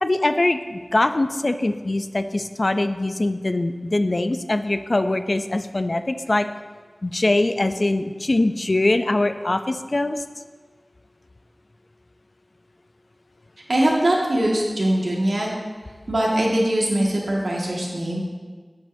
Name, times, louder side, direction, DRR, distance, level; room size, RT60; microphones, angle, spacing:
voice 1, 0.0-6.5 7.0-10.2, left 2 dB, 55° left, 9 dB, 0.4 m, -22 dB
voice 2, 13.7-15.5 16.1-18.2, right 1 dB, 75° right, -3 dB, 1.8 m, -21 dB
9.3 x 9.2 x 2.7 m, 1.5 s
wide cardioid pair, 45°, 0 cm